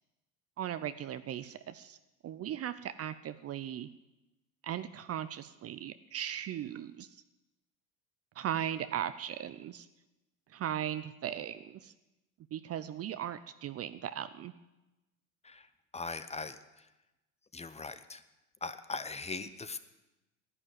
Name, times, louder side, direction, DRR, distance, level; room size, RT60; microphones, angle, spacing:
voice 1, 0.6-2.0 2.2-3.9 4.6-7.1 8.4-9.9 10.5-11.9 12.5-14.5, right 10 dB, 35° right, 13 dB, 0.7 m, -38 dB
voice 2, 15.9-16.8 17.5-18.2 18.6-19.8, left 3 dB, 15° left, 11 dB, 0.9 m, -40 dB
11.0 x 9.9 x 9.6 m, 1.0 s
hypercardioid pair, 80°, 42 cm